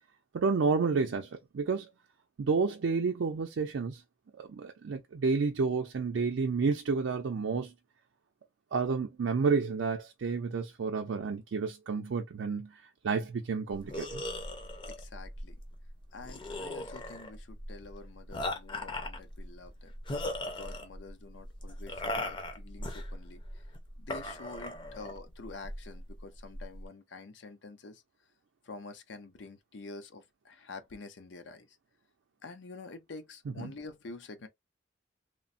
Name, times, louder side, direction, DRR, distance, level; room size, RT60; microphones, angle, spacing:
voice 1, 0.3-1.9 2.4-4.0 4.4-7.7 8.7-12.8 13.0-14.2 33.6-33.7, right 4 dB, 80° right, 0.4 m, -30 dB
sound 1, 13.7-26.8, left 1 dB, 25° left, 0.6 m, -39 dB
voice 2, 14.9-15.6 16.1-19.9 20.6-23.4 24.0-28.0 28.6-31.8 32.4-34.5, left 3 dB, 70° left, 0.5 m, -47 dB
3.1 x 2.0 x 2.5 m
head